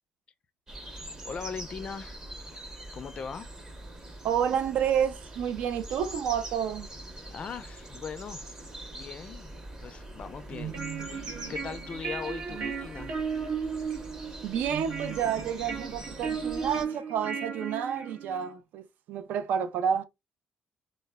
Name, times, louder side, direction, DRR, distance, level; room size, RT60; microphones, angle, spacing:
sound 1, 0.7-16.8, right 1 dB, 20° right, 0.7 m, -44 dB
voice 1, 1.2-2.2 2.9-3.5 7.3-8.5 8.9-9.5 9.8-13.2, left 6 dB, 40° left, 0.3 m, -40 dB
voice 2, 4.2-6.9 12.5-12.7 14.4-20.0, right 8 dB, 80° right, 0.4 m, -30 dB
sound 2, 10.5-18.5, right 6 dB, 55° right, 0.8 m, -35 dB
2.0 x 2.0 x 3.4 m
cardioid pair, 120°, 3 cm